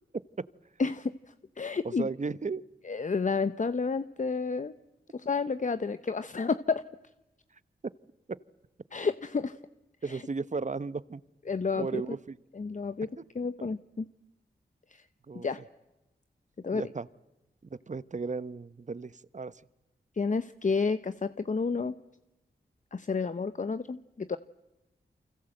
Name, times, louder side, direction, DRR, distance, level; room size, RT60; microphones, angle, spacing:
voice 1, 0.8-1.1 1.6-2.1 2.8-4.7 5.1-6.8 8.9-9.6 10.1-10.2 11.5-12.2 12.5-13.1 13.3-14.1 14.9-15.0 15.3-15.6 16.6-16.8 20.2-21.9 22.9-24.4, left 4 dB, 45° left, 12 dB, 0.9 m, -30 dB
voice 2, 1.8-2.6 8.3-8.4 10.0-11.2 11.8-12.4 13.6-13.7 15.3-15.5 16.7-17.1 17.7-19.6, right 4 dB, 40° right, 16 dB, 1.0 m, -35 dB
28.5 x 25.0 x 7.9 m, 1.0 s
cardioid pair, 45°, 19 cm